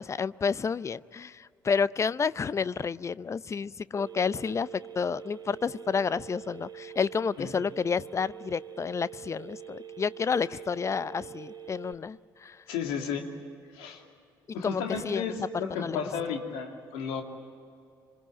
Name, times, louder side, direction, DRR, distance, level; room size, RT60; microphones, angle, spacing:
voice 1, 0.0-12.6 14.6-15.3 15.5-16.1, left 5 dB, 30° left, 19 dB, 0.6 m, -30 dB
Telephone, 4.0-11.9, right 7 dB, 40° right, 2.7 m, -45 dB
voice 2, 12.7-13.3 13.7-14.0 14.5-17.2, left 6 dB, 65° left, 3 dB, 2.7 m, -33 dB
26.5 x 23.5 x 9.0 m, 2.3 s
figure-of-eight pair, 45°, 10 cm